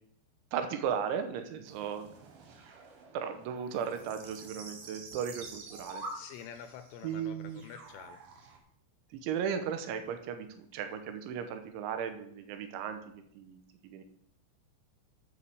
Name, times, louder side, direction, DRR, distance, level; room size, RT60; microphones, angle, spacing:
voice 1, 0.5-2.1 3.1-6.0 7.0-7.6 9.2-14.0, right 7 dB, 85° right, 8 dB, 3.3 m, -36 dB
sound 1, 1.6-8.6, right 4 dB, 65° right, 2.3 m, -51 dB
sound 2, 5.6-6.3, right 1 dB, 40° right, 3.5 m, -41 dB
voice 2, 6.1-8.2, left 9 dB, 80° left, 8 dB, 2.7 m, -47 dB
9.8 x 5.2 x 6.9 m, 0.69 s
omnidirectional pair, 5.4 m